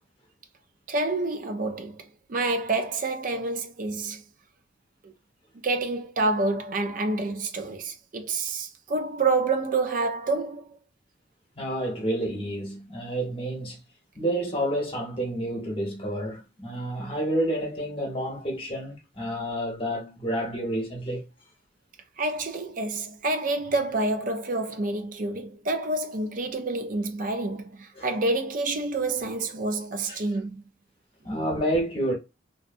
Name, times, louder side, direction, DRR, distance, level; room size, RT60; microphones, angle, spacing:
voice 1, 0.9-2.0 2.3-4.2 5.0-5.1 5.6-10.6 22.2-30.6, right 3 dB, 45° right, 0.4 m, -28 dB
voice 2, 11.6-13.8 14.1-21.3 28.0-28.1 30.1-30.3 31.2-32.1, right 1 dB, 30° left, 1.0 m, -29 dB
2.7 x 2.1 x 2.5 m
head